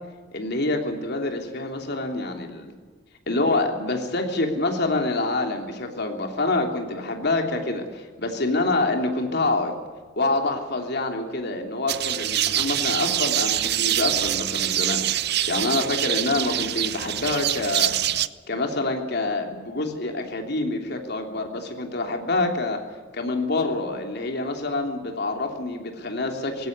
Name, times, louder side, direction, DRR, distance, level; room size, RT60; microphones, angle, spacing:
voice 1, 0.3-2.7 3.3-9.7 10.2-17.9 18.5-22.8 23.1-26.7, left 2 dB, 60° left, 3 dB, 3.2 m, -26 dB
sound 1, 11.9-18.3, right 12 dB, 60° right, 0.6 m, -25 dB
19.0 x 16.5 x 9.5 m, 1.5 s
head